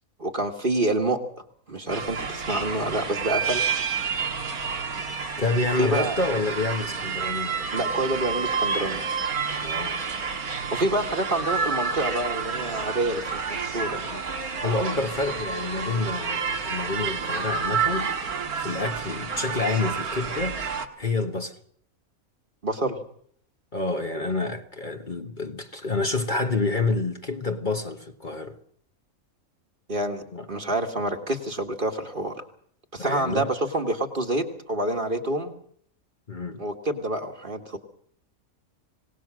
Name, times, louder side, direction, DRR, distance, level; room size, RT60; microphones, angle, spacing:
voice 1, 0.2-1.2 1.7-3.6 5.8-6.2 7.7-9.0 10.7-14.1 22.6-23.0 29.9-32.4 32.9-35.5 36.6-37.8, right 1 dB, 35° right, 1.8 m, -27 dB
sound 1, 1.9-20.9, right 5 dB, 90° right, 2.2 m, -29 dB
voice 2, 5.4-7.6 9.6-10.2 14.1-14.2 14.6-18.1 18.6-21.6 23.7-28.6 30.3-30.5 33.0-33.6 36.3-36.6, left 3 dB, 35° left, 1.4 m, -28 dB
26.0 x 18.5 x 6.3 m
omnidirectional pair, 1.5 m